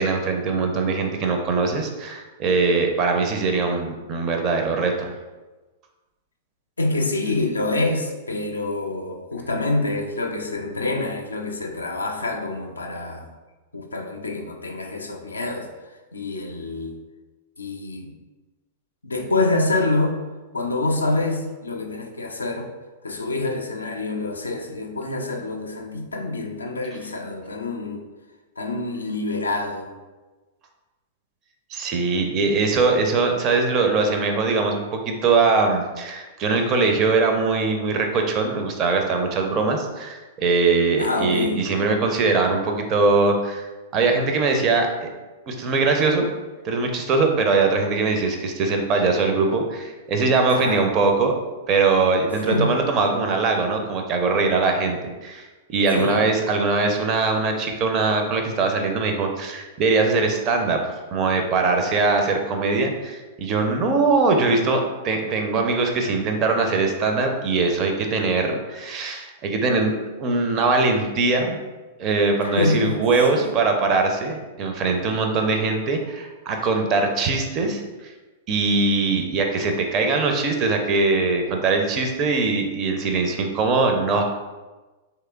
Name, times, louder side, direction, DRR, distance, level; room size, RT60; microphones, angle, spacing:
voice 1, 0.0-5.1 31.7-45.1 45.5-46.3 46.6-51.3 51.7-60.8 61.1-69.9 70.2-71.6 72.0-78.1 78.5-84.2, right 3 dB, 30° right, 3 dB, 0.4 m, -21 dB
voice 2, 6.8-13.3 13.7-15.7 16.1-16.9 17.6-18.2 19.0-20.2 20.5-22.7 23.0-28.0 28.6-29.9 41.0-41.7 50.5-50.8 52.3-52.9 55.9-56.3 72.4-73.0 73.3-73.5, left 2 dB, 80° left, 4 dB, 0.4 m, -26 dB
3.2 x 2.8 x 2.3 m, 1.2 s
figure-of-eight pair, 100°, 0 cm